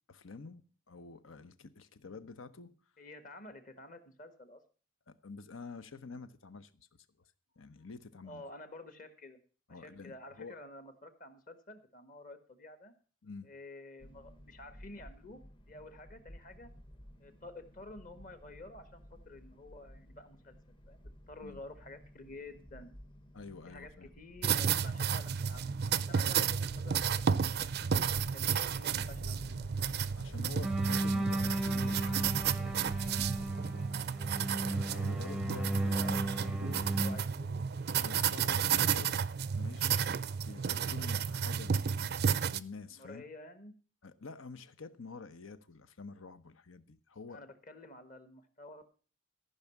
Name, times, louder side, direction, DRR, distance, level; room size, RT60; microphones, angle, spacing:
voice 1, 0.1-2.7 5.1-7.0 7.6-8.4 9.7-10.6 13.2-13.5 21.4-21.6 23.3-24.1 30.2-32.7 33.0-33.3 34.8-36.2 37.9-43.3 44.0-47.4, left 4 dB, 80° left, 0.9 m, -48 dB
voice 2, 3.0-4.6 8.2-9.4 9.7-12.9 13.4-15.4 15.7-16.7 17.2-20.6 20.9-22.9 23.7-25.7 26.1-27.4 28.1-29.7 35.7-37.6 42.9-43.7 47.3-48.8, left 2 dB, 40° left, 1.5 m, -50 dB
sound 1, 14.0-33.6, equal, 25° left, 0.9 m, -53 dB
sound 2, 24.4-42.6, right 7 dB, 50° right, 0.5 m, -32 dB
sound 3, 30.6-37.2, right 1 dB, 5° right, 0.6 m, -35 dB
14.5 x 5.6 x 7.2 m
head